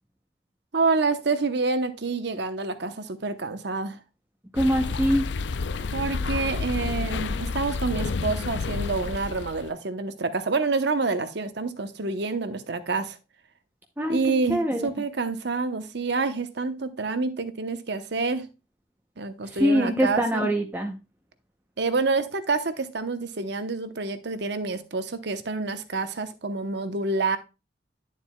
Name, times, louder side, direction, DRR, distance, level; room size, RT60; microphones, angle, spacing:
voice 1, 0.7-4.0 5.9-13.2 14.1-18.5 19.2-20.2 21.8-27.4, right 3 dB, 60° right, 0.9 m, -27 dB
voice 2, 4.5-5.3 14.0-14.2 14.5-14.9 19.4-20.9, equal, 10° right, 0.7 m, -23 dB
sound 1, 4.6-9.7, left 4 dB, 65° left, 0.5 m, -30 dB
11.0 x 7.4 x 2.3 m
head